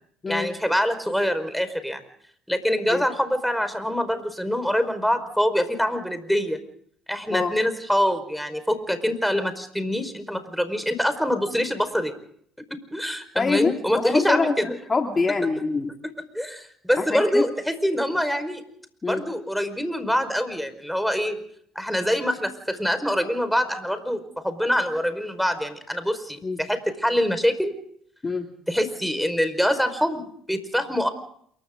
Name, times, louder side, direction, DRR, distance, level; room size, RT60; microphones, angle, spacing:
voice 1, 0.3-2.0 2.5-6.6 7.1-12.1 12.9-14.7 16.0-18.6 19.1-21.4 21.7-27.7 28.7-31.1, equal, ahead, 10 dB, 5.0 m, -25 dB
voice 2, 13.3-16.0 17.0-17.5 19.0-19.2 26.4-26.6 28.2-28.5, left 4 dB, 30° left, 3 dB, 2.7 m, -25 dB
28.5 x 23.5 x 3.9 m, 0.64 s
supercardioid pair, 70°, 0 cm